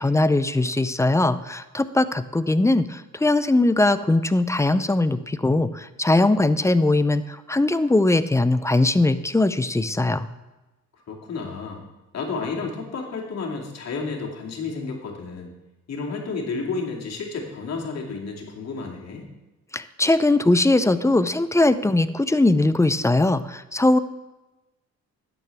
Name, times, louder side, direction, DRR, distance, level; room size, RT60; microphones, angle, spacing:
voice 1, 0.0-10.3 19.7-24.0, left 2 dB, 10° left, 13 dB, 0.5 m, -20 dB
voice 2, 11.1-11.9 12.1-15.6 15.9-19.3, left 4 dB, 60° left, -1 dB, 2.5 m, -31 dB
11.5 x 9.4 x 3.5 m, 1.1 s
cardioid pair, 90°, 30 cm